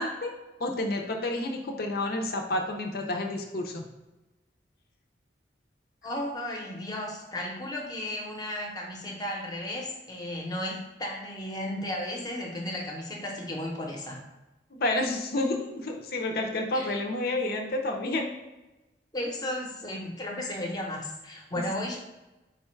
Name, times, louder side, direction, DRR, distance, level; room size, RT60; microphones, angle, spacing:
voice 1, 0.0-3.9 14.7-18.3, left 2 dB, 55° left, 2 dB, 0.6 m, -30 dB
voice 2, 6.0-14.2 16.7-17.0 19.1-22.0, left 1 dB, 20° left, -1 dB, 0.9 m, -34 dB
4.8 x 2.3 x 4.4 m, 1.0 s
head